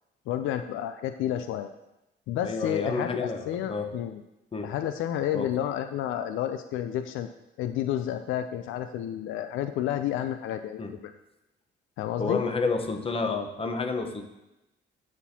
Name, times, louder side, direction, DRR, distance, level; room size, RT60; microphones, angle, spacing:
voice 1, 0.3-1.7 2.3-4.2 4.6-7.3 7.6-11.1 12.0-12.4, left 11 dB, 85° left, 9 dB, 0.4 m, -30 dB
voice 2, 2.4-3.9 4.5-4.7 5.3-5.5 10.8-10.9 12.2-14.2, left 4 dB, 30° left, 5 dB, 0.9 m, -30 dB
13.0 x 4.3 x 2.8 m, 0.95 s
cardioid pair, 90°, 20 cm